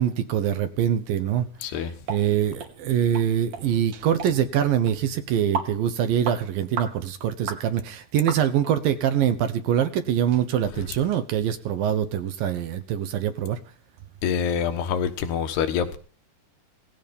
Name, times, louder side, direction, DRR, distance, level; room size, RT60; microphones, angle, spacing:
voice 1, 0.0-1.5 2.1-13.6, right 9 dB, 70° right, 2.5 m, -24 dB
voice 2, 1.6-2.0 14.2-16.0, left 7 dB, 80° left, 3.3 m, -26 dB
sound 1, 2.1-2.2 2.6-2.7 3.1-3.3 3.5-3.6 4.2-4.3 4.9-5.0 5.5-5.7 6.2-6.4 6.8-6.9 7.5-7.6 8.3-8.7 9.2-9.3 9.8-9.9 10.3-10.4, right 5 dB, 55° right, 3.9 m, -32 dB
18.0 x 15.0 x 5.4 m
omnidirectional pair, 4.7 m